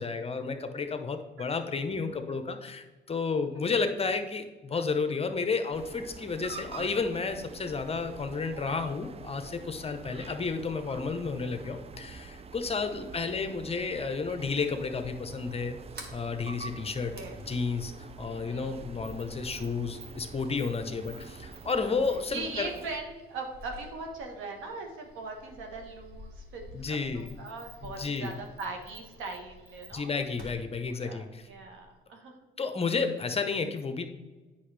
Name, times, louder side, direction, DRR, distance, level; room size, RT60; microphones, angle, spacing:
voice 1, 0.0-15.8 16.1-17.2 17.5-22.7 26.7-27.4 27.8-28.3 29.9-31.4 32.6-34.1, left 4 dB, 30° left, 7 dB, 0.8 m, -32 dB
sound 1, 5.7-23.0, right 5 dB, 30° right, 0.4 m, -46 dB
Sliding door, 15.8-32.0, equal, 55° right, 1.6 m, -51 dB
voice 2, 18.4-18.8 22.3-30.2 30.9-32.3, right 3 dB, 85° right, 3 dB, 1.4 m, -40 dB
8.3 x 5.8 x 3.4 m, 1.2 s
cardioid pair, 90°, 20 cm